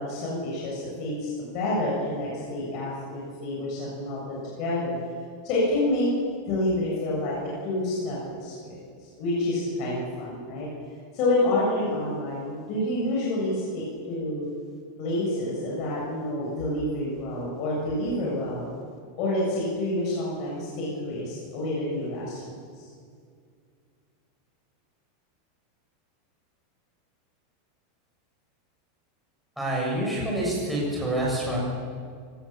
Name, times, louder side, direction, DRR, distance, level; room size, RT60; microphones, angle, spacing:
voice 1, 0.0-4.9 5.4-6.1 6.5-7.4 7.6-10.7 11.1-14.5 15.0-18.7 19.2-22.9, left 1 dB, 35° left, -5 dB, 7.1 m, -28 dB
voice 2, 29.6-31.6, right 1 dB, ahead, -5 dB, 7.0 m, -27 dB
25.5 x 19.5 x 7.4 m, 2.1 s
supercardioid pair, 180°, 0 cm